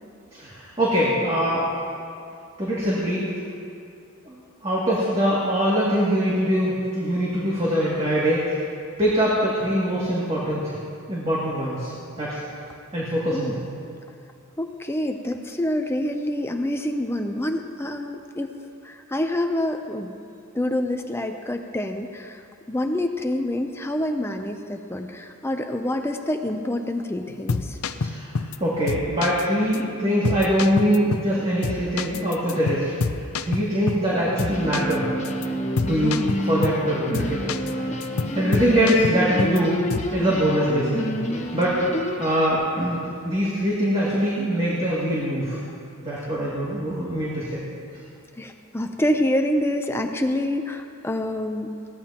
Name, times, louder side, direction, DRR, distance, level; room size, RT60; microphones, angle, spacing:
voice 1, 0.3-1.7 2.6-3.2 4.3-4.4 4.6-8.5 9.0-10.8 11.1-11.9 12.2-12.4 12.9-13.7 28.0-32.9 33.4-35.1 35.9-37.5 37.8-37.9 38.3-39.8 40.1-41.2 41.5-41.8 42.2-45.6 46.0-47.6, equal, 25° right, -8 dB, 2.3 m, -23 dB
voice 2, 13.3-13.6 14.6-20.1 20.5-22.4 22.7-27.8 41.9-42.0 48.4-51.8, left 1 dB, 10° left, 5 dB, 0.5 m, -27 dB
sound 1, 27.3-28.6 28.9-29.4 29.7-29.8 30.2-31.4 31.6-34.1 34.4-35.0 35.2-35.5 35.8-36.8 37.1-37.7 38.0-39.6 39.9-40.2, left 4 dB, 80° left, 0.6 m, -28 dB
sound 2, 34.5-42.5, equal, 30° left, 1.2 m, -29 dB
21.0 x 16.5 x 2.9 m, 2.5 s
head